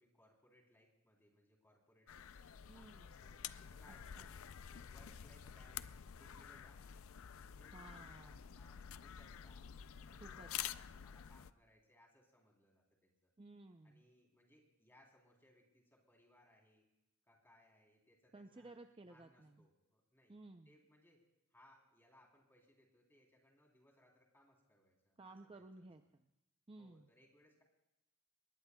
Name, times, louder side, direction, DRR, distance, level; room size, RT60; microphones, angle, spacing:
voice 1, 0.0-4.3 4.7-7.0 7.4-9.7 10.1-13.3 13.8-16.9 17.2-18.7 19.1-20.4 20.6-21.2 21.5-25.9 26.8-27.6, left 1 dB, 10° left, 0 dB, 3.4 m, -69 dB
sound 1, 2.1-11.5, left 9 dB, 65° left, 0.4 m, -49 dB
voice 2, 2.7-3.1 4.2-4.3 7.7-8.7 10.2-10.5 13.4-14.0 18.3-19.6 20.3-20.7 25.2-26.3 26.7-27.1, right 2 dB, 25° right, 6 dB, 0.5 m, -57 dB
23.5 x 20.5 x 2.3 m, 0.88 s
head